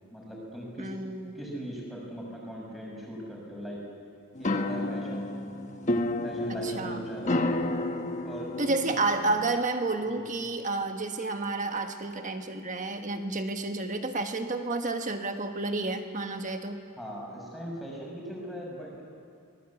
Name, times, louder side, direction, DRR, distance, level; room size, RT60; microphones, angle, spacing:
voice 1, 0.1-0.9 1.3-3.8 4.4-5.3 6.2-7.4 8.2-8.5 8.8-9.0 10.1-10.4 17.0-19.0, equal, ahead, -3 dB, 6.1 m, -40 dB
voice 2, 0.8-1.3 6.5-7.1 8.6-16.8, right 3 dB, 35° right, 6 dB, 1.4 m, -30 dB
sound 1, 4.4-9.6, left 1 dB, 35° left, 1.2 m, -31 dB
25.0 x 19.5 x 8.4 m, 2.2 s
head